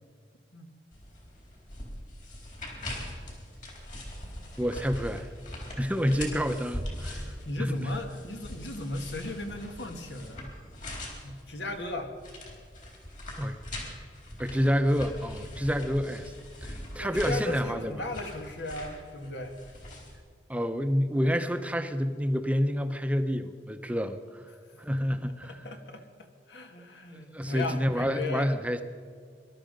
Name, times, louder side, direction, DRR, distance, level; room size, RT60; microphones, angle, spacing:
sound 1, 0.9-20.2, left 1 dB, 45° left, 4.1 m, -42 dB
voice 1, 4.6-5.3 5.8-8.0 13.4-13.6 14.4-16.3 16.6-18.0 20.5-24.4 24.8-25.6 27.1-28.8, equal, 10° right, 8 dB, 0.7 m, -28 dB
voice 2, 7.5-10.5 11.2-12.1 17.0-19.6 24.7-24.8 25.4-28.5, left 2 dB, 85° left, 5 dB, 1.8 m, -36 dB
22.5 x 12.0 x 5.2 m, 2.1 s
head